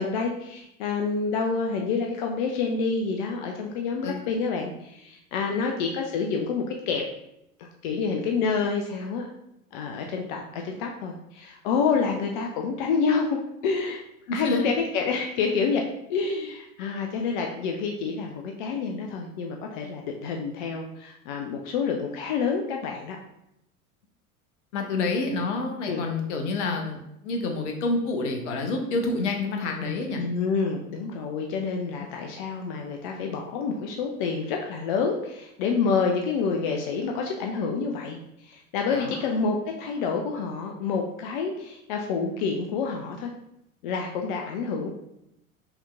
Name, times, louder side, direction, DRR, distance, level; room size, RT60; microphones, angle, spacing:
voice 1, 0.0-7.0 7.6-9.3 9.7-14.0 14.3-23.2 25.9-26.0 30.2-43.3 43.8-44.9, left 5 dB, 35° left, 2 dB, 0.4 m, -28 dB
voice 2, 14.3-14.7 24.7-30.2 38.9-39.3, left 3 dB, 50° left, 3 dB, 0.9 m, -28 dB
5.4 x 2.9 x 2.3 m, 0.81 s
figure-of-eight pair, 85°, 44 cm